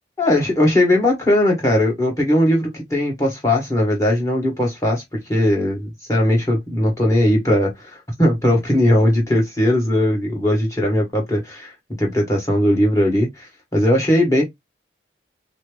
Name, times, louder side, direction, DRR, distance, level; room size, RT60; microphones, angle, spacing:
voice 1, 0.2-5.0 5.3-11.7 12.0-13.5 13.7-14.4, left 1 dB, 15° left, 1.6 m, -18 dB
5.4 x 2.1 x 3.4 m
head